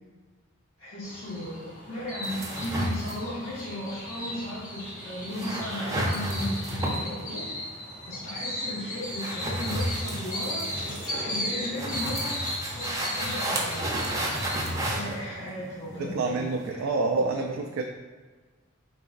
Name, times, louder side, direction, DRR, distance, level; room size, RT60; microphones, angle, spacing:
voice 1, 0.8-7.4 8.1-12.4 12.7-14.4 14.8-16.4 16.7-17.2, left 1 dB, 75° left, -9 dB, 1.4 m, -36 dB
sound 1, 1.0-14.7, left 1 dB, 40° left, 1.3 m, -36 dB
sound 2, 2.2-16.7, right 1 dB, 15° right, 0.6 m, -33 dB
voice 2, 16.0-17.8, right 3 dB, 75° right, 2 dB, 0.3 m, -28 dB
4.0 x 3.9 x 2.4 m, 1.4 s
head